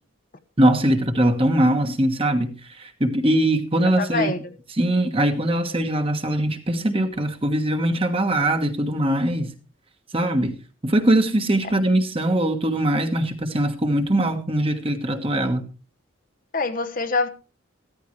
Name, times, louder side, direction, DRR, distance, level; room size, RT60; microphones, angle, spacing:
voice 1, 0.6-4.3 4.8-9.5 10.1-10.5 10.8-15.6, right 1 dB, 25° right, 1.4 m, -21 dB
voice 2, 4.0-4.4 16.5-17.3, left 3 dB, 40° left, 0.9 m, -24 dB
14.5 x 14.0 x 3.2 m
head